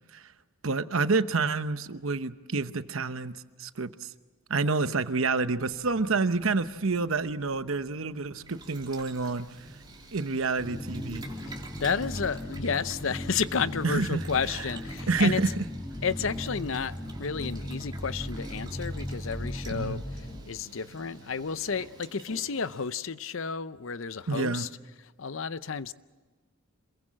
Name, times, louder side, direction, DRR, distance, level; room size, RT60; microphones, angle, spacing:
voice 1, 0.6-4.1 4.5-9.7 10.1-11.3 13.8-14.7 15.1-15.6 19.7-20.0 24.3-24.7, right 3 dB, 70° right, 0.9 m, -28 dB
sound 1, 5.6-21.8, equal, 85° left, 3.5 m, -55 dB
Boiling, 8.4-22.9, right 3 dB, 20° right, 3.1 m, -50 dB
sound 2, 10.6-20.4, left 1 dB, 30° left, 3.0 m, -37 dB
voice 2, 11.4-15.5 16.0-24.7 25.2-25.9, left 6 dB, 65° left, 0.7 m, -32 dB
27.0 x 22.0 x 7.6 m
head